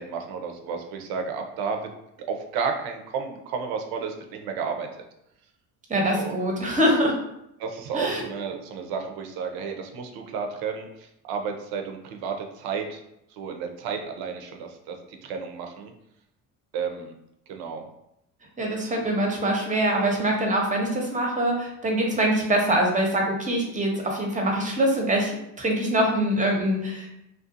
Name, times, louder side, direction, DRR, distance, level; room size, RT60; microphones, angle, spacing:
voice 1, 0.0-1.9 2.3-4.9 6.1-6.4 7.6-13.0 13.3-15.9 16.7-17.2 17.5-17.8, right 5 dB, 60° right, 4 dB, 0.6 m, -32 dB
voice 2, 5.9-7.1 7.9-8.2 18.6-27.1, right 1 dB, 20° right, 0 dB, 0.7 m, -24 dB
2.5 x 2.3 x 2.5 m, 0.82 s
supercardioid pair, 80°, 42 cm